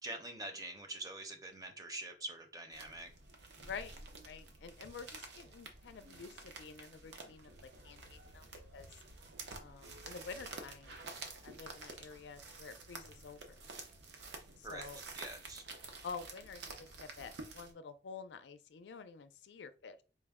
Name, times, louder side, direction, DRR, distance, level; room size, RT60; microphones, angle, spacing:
voice 1, 0.0-3.1 14.6-15.7, right 2 dB, 20° right, 0.5 m, -45 dB
sound 1, 2.7-17.7, right 3 dB, 85° right, 0.7 m, -50 dB
voice 2, 3.6-4.0 4.2-8.5 8.7-8.9 9.6-11.0 11.4-13.6 14.6-15.0 16.0-20.0, left 5 dB, 90° left, 0.4 m, -49 dB
4.3 x 2.1 x 3.5 m
head